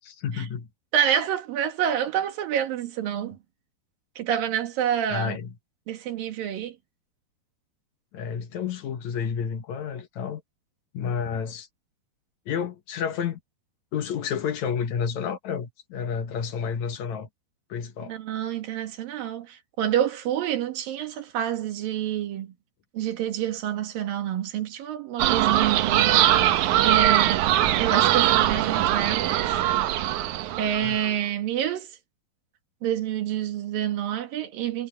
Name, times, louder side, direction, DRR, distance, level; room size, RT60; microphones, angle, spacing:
voice 1, 0.2-0.7 5.1-5.5 8.1-10.4 10.9-11.7 12.5-13.4 13.9-17.3 17.7-18.1 30.8-31.2, left 7 dB, 65° left, 2.3 m, -30 dB
voice 2, 0.9-3.4 4.2-5.4 5.9-6.8 18.1-22.5 22.9-26.5 26.8-27.5 27.8-29.6 30.6-32.0 32.8-34.9, right 10 dB, 85° right, 3.5 m, -28 dB
sound 1, 25.2-31.1, right 13 dB, 70° right, 2.1 m, -21 dB
omnidirectional pair, 4.0 m